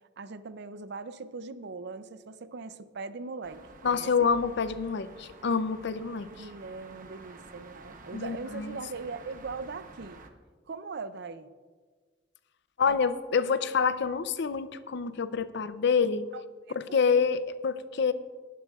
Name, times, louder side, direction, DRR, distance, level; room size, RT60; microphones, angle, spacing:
voice 1, 0.2-4.3 6.3-10.2 10.7-11.5 12.9-13.0 16.3-16.4 16.7-17.0, right 4 dB, 60° right, 13 dB, 0.6 m, -40 dB
sound 1, 3.4-10.3, right 3 dB, 45° right, 0.9 m, -51 dB
voice 2, 3.8-6.5 8.1-8.8 12.8-16.3 16.8-18.1, left 5 dB, 65° left, 13 dB, 0.6 m, -27 dB
18.5 x 12.0 x 2.4 m, 1.5 s
head